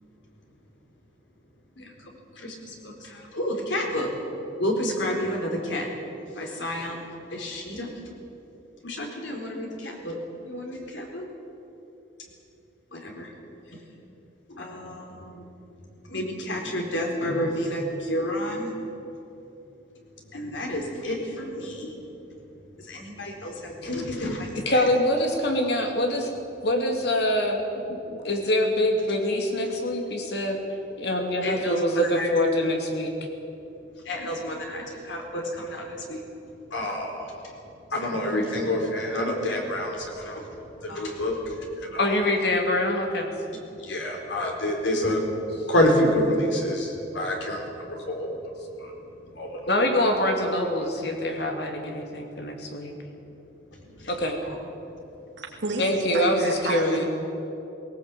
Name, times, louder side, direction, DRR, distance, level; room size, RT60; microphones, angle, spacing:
voice 1, 2.4-4.1 4.6-5.9 6.4-7.0 7.3-7.9 8.8-10.2 10.4-11.2 12.9-13.3 14.5-15.4 16.1-18.7 20.3-21.9 22.8-24.5 31.4-31.8 32.2-32.3 34.1-36.2 36.7-37.4 37.9-40.4 40.8-42.2 43.8-45.2 45.7-47.7 48.1-48.4 48.8-48.9 49.3-49.6 53.9-54.1, left 1 dB, 90° left, 1 dB, 4.2 m, -29 dB
voice 2, 24.7-26.3 26.6-30.6 31.0-33.1 42.0-43.3 49.7-52.9 54.1-54.4 55.8-57.0, left 1 dB, 65° left, 2 dB, 2.8 m, -24 dB
voice 3, 55.4-57.0, right 2 dB, 80° right, -1 dB, 2.5 m, -31 dB
19.0 x 18.5 x 8.5 m, 2.9 s
head